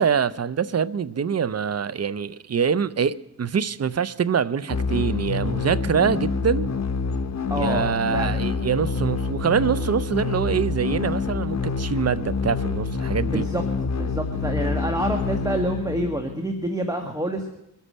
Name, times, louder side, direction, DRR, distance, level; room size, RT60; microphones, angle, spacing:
voice 1, 0.0-6.7 7.6-13.4, right 7 dB, 55° right, 0.6 m, -24 dB
sound 1, 4.7-16.6, left 4 dB, 60° left, 1.0 m, -27 dB
voice 2, 7.5-8.4 13.3-13.6 13.9-17.5, right 1 dB, 10° right, 1.6 m, -27 dB
24.0 x 8.2 x 5.5 m
cardioid pair, 55°, 30 cm